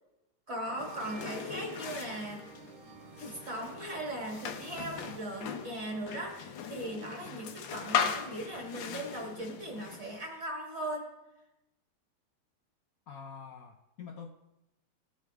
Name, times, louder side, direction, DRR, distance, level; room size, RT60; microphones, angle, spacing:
voice 1, 0.5-2.4 3.2-11.1, right 1 dB, 30° right, 0 dB, 2.1 m, -39 dB
sound 1, 0.6-6.1, right 6 dB, 75° right, 1.6 m, -51 dB
sound 2, 0.8-10.2, left 7 dB, 70° left, 1.5 m, -38 dB
voice 2, 13.1-14.3, left 6 dB, 85° left, 3 dB, 0.7 m, -46 dB
17.5 x 6.9 x 3.4 m, 0.96 s
omnidirectional pair, 2.4 m